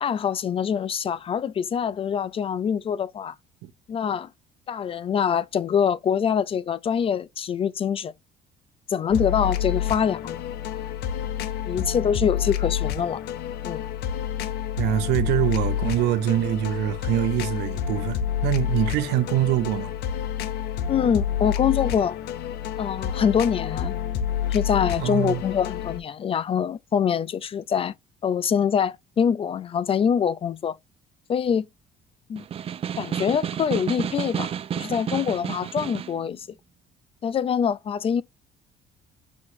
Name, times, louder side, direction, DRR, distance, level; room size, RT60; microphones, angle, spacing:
voice 1, 0.0-3.3 3.9-4.3 4.7-8.1 8.9-10.4 11.7-13.2 13.6-13.8 20.9-22.2 22.8-23.9 24.5-27.9 28.2-30.8 31.3-31.7 32.3-32.4 33.0-36.5 37.2-38.2, left 7 dB, 35° left, 0.4 m, -24 dB
sound 1, 9.1-26.0, left 9 dB, 75° left, 0.7 m, -29 dB
voice 2, 14.8-19.9 25.0-25.4, right 13 dB, 85° right, 0.7 m, -24 dB
Snare drum, 32.4-36.2, right 9 dB, 35° right, 0.4 m, -31 dB
6.1 x 3.0 x 2.7 m
cardioid pair, 110°, 17 cm